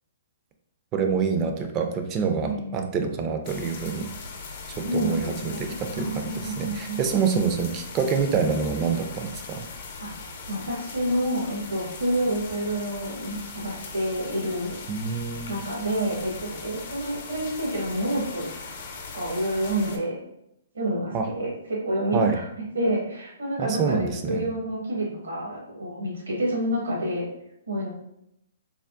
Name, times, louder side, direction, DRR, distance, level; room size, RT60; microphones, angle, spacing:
voice 1, 0.9-4.1 4.7-9.6 14.9-15.6 21.1-21.3 22.1-22.4 23.6-24.4, right 5 dB, 30° right, 5 dB, 0.4 m, -26 dB
voice 2, 2.4-2.9 4.7-7.0 10.0-10.1 10.5-14.7 15.5-18.5 19.1-20.2 20.7-27.3 27.7-27.9, right 1 dB, 85° right, -3 dB, 1.2 m, -28 dB
sound 1, 3.4-20.0, left 4 dB, 60° left, 0.7 m, -40 dB
3.5 x 2.1 x 2.4 m, 0.78 s
hypercardioid pair, 125°, 0 cm